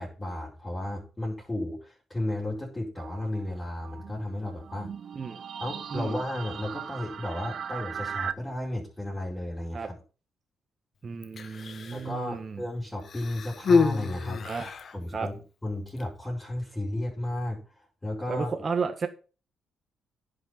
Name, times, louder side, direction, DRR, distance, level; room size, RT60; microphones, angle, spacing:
voice 1, 0.0-4.9 5.6-10.0 11.9-14.4 14.9-15.3 15.6-17.6 18.0-18.5, left 1 dB, 15° left, -5 dB, 4.9 m, -33 dB
sound 1, 3.0-8.3, right 7 dB, 60° right, 0.7 m, -39 dB
voice 2, 11.0-12.6 14.4-14.7 15.1-15.3 18.3-19.1, right 5 dB, 40° right, 5 dB, 1.5 m, -33 dB
Human voice, 11.2-12.1 13.0-15.0 15.9-16.0, left 4 dB, 50° left, 1.3 m, -27 dB
10.5 x 6.6 x 5.9 m, 0.35 s
cardioid pair, 90°, 0 cm